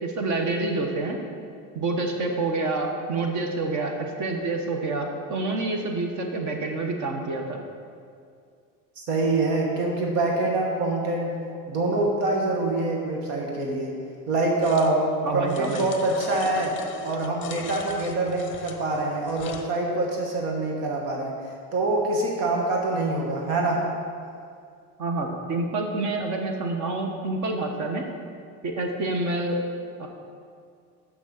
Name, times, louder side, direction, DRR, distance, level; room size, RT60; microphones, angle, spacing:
voice 1, 0.0-1.2 1.7-7.6 15.2-15.9 25.0-28.0 28.6-29.6 30.0-30.1, right 2 dB, 45° right, 3 dB, 1.1 m, -27 dB
voice 2, 9.0-13.9 14.3-21.3 21.7-23.9, right 2 dB, 80° right, 0 dB, 1.5 m, -25 dB
sound 1, 14.6-15.0 15.5-19.7, left 6 dB, 30° left, 0.6 m, -40 dB
6.3 x 6.1 x 7.0 m, 2.3 s
cardioid pair, 150°, 40 cm